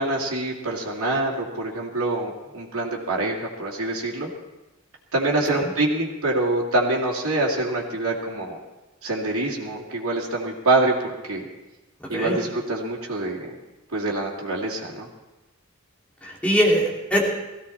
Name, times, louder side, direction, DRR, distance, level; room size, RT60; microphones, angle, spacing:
voice 1, 0.0-4.3 5.1-8.6 9.0-11.5 12.1-13.6 13.9-15.1, right 2 dB, 85° right, -2 dB, 2.5 m, -25 dB
voice 2, 12.0-12.4 16.2-17.3, equal, 5° left, -3 dB, 2.8 m, -22 dB
17.0 x 15.5 x 4.2 m, 1.1 s
head